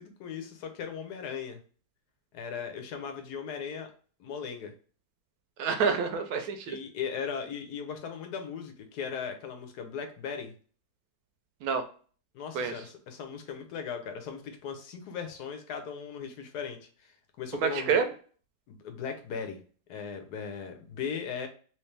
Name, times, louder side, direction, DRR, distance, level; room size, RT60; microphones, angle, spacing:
voice 1, 0.0-1.6 2.3-3.9 4.2-4.7 6.6-10.5 12.3-18.0 18.7-19.6 19.9-21.5, left 6 dB, 80° left, 5 dB, 1.3 m, -38 dB
voice 2, 5.6-6.8 11.6-11.8 12.5-12.7 17.5-18.1, right 6 dB, 70° right, 7 dB, 1.0 m, -27 dB
3.2 x 3.0 x 3.2 m, 0.41 s
omnidirectional pair, 1.7 m